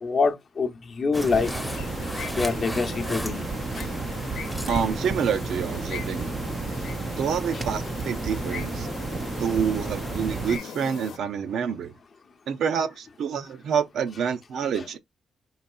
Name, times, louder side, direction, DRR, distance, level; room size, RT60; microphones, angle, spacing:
voice 1, 0.0-1.5 2.4-3.4 7.5-7.6 14.7-14.8, left 4 dB, 40° left, 0.7 m, -25 dB
sound 1, 1.1-3.9 4.2-4.8 5.2-5.5 6.0-6.2, left 1 dB, ahead, 0.7 m, -38 dB
sound 2, 1.1-10.6, right 4 dB, 20° right, 0.4 m, -32 dB
sound 3, 1.3-11.2, left 7 dB, 85° left, 0.8 m, -39 dB
voice 2, 4.7-6.3 7.2-8.9 9.4-11.9 12.5-15.0, right 7 dB, 70° right, 0.6 m, -27 dB
5.2 x 4.0 x 2.3 m
wide cardioid pair, 155°, 0 cm